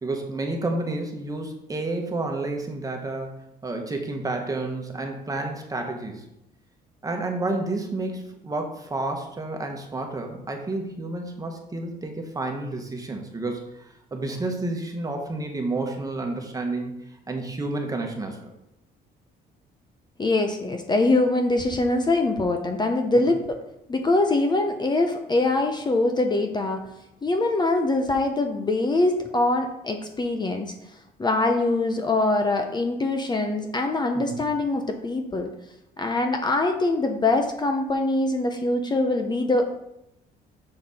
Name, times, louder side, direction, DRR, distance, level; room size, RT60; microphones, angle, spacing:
voice 1, 0.0-3.3 3.6-6.2 7.0-17.0 17.3-18.5 23.3-23.4 34.1-34.5, right 2 dB, 20° right, 3 dB, 1.4 m, -30 dB
voice 2, 20.2-23.6 23.9-26.8 27.2-30.7 31.2-35.5 36.0-39.8, left 2 dB, 25° left, 5 dB, 0.8 m, -23 dB
6.8 x 5.8 x 4.3 m, 0.84 s
cardioid pair, 110°, 17 cm